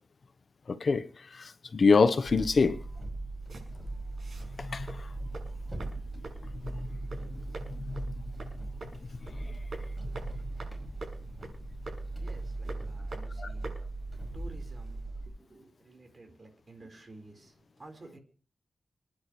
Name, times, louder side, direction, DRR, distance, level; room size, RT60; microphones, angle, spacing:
voice 1, 0.7-1.0 1.3-2.8 4.6-5.0 6.7-6.9 7.7-8.0 13.4-13.5, left 4 dB, 60° left, 0.9 m, -25 dB
sound 1, 2.2-15.3, right 2 dB, 10° right, 5.4 m, -39 dB
sound 2, 3.4-15.0, right 2 dB, 65° right, 6.6 m, -48 dB
voice 2, 12.2-13.7 14.3-18.2, right 2 dB, 40° right, 4.2 m, -52 dB
28.0 x 10.5 x 3.1 m
wide cardioid pair, 110°, 0 cm